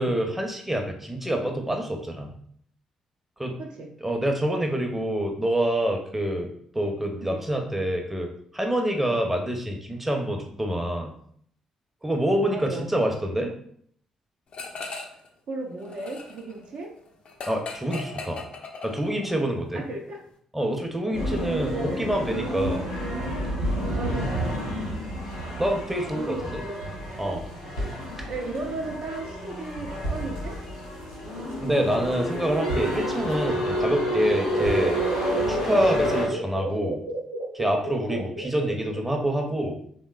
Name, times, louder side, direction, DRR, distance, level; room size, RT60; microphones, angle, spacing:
voice 1, 0.0-2.3 3.4-3.5 4.0-6.5 6.7-11.1 12.0-13.5 17.5-18.4 18.8-19.8 20.5-22.8 25.6-26.4 27.2-27.4 31.6-35.0 35.5-37.0 37.5-39.8, right 1 dB, 10° right, 2 dB, 0.6 m, -26 dB
voice 2, 3.6-3.9 7.1-7.4 12.5-12.9 15.5-16.9 19.7-20.2 21.1-21.9 22.7-23.0 23.9-24.6 26.1-27.7 28.3-30.6 33.5-33.6 34.1-34.2 34.7-34.9 35.7-35.8 38.1-38.3, right 2 dB, 55° right, 1 dB, 0.4 m, -36 dB
sound 1, 14.5-15.3 15.6-19.4, left 3 dB, 50° left, 0.4 m, -39 dB
sound 2, 21.1-36.3, equal, 90° left, 0.7 m, -29 dB
sound 3, 32.8-39.2, right 1 dB, 80° right, 0.8 m, -35 dB
3.1 x 2.1 x 2.3 m, 0.63 s
figure-of-eight pair, 40°, 2 cm